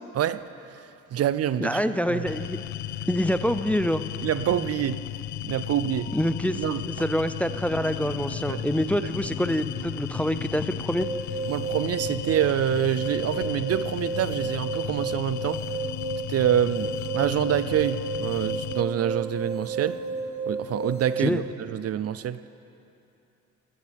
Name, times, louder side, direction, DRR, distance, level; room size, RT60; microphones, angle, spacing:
voice 1, 0.7-1.8 2.1-2.3 4.2-5.0 5.4-6.1 6.6-6.9 8.4-8.6 11.5-15.6 16.3-20.0 20.5-22.4, right 10 dB, 55° right, 14 dB, 0.5 m, -26 dB
voice 2, 1.6-2.6 3.1-4.0 6.1-11.1 21.2-21.4, equal, 5° left, 10 dB, 0.5 m, -26 dB
sound 1, 2.3-18.8, left 13 dB, 70° left, 0.5 m, -35 dB
sound 2, 2.8-21.6, left 2 dB, 25° left, 1.3 m, -44 dB
sound 3, 11.0-21.4, right 4 dB, 15° right, 2.5 m, -32 dB
18.0 x 18.0 x 3.5 m, 2.7 s
cardioid pair, 90°, 30 cm